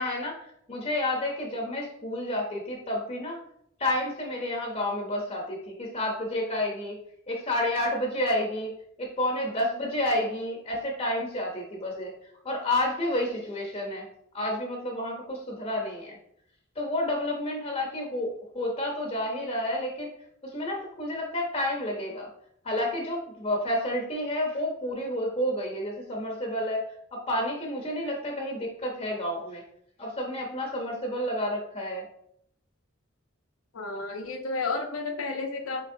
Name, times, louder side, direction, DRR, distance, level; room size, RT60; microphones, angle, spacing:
voice 1, 0.0-3.4 3.8-6.9 7.3-12.1 12.4-14.1 14.3-16.2 16.8-20.1 20.5-22.3 22.6-26.8 27.1-29.6 30.0-32.0, left 1 dB, 30° left, 0 dB, 0.6 m, -30 dB
voice 2, 33.7-35.9, left 3 dB, 90° left, 3 dB, 0.7 m, -32 dB
5.2 x 2.9 x 2.6 m, 0.70 s
head